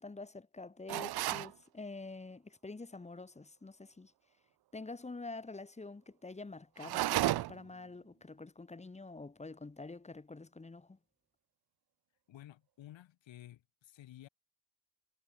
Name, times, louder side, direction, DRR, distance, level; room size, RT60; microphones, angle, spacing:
voice 1, 0.0-4.1 4.7-11.0, left 3 dB, 15° left, 2.0 m, -47 dB
sound 1, 0.9-1.5 6.8-7.7, right 15 dB, 60° right, 0.5 m, -32 dB
voice 2, 12.3-14.3, left 13 dB, 80° left, 2.4 m, -53 dB
wide cardioid pair, 165°, 45 cm